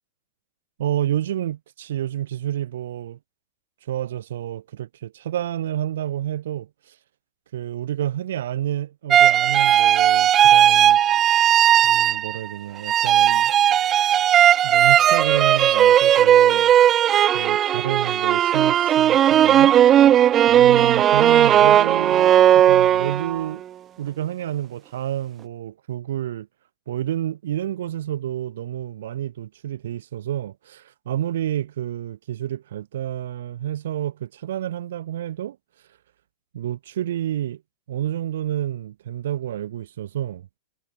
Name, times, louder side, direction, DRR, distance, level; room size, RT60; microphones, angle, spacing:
voice 1, 0.8-3.2 3.8-6.9 7.5-11.0 11.8-13.5 14.6-16.7 17.3-19.8 20.4-23.6 24.0-26.5 26.9-35.6 36.5-37.6 37.9-40.5, right 11 dB, 75° right, 2.8 m, -29 dB
sound 1, 9.1-12.5 12.8-23.5, right 11 dB, 30° right, 0.3 m, -16 dB
hypercardioid pair, 125°, 0 cm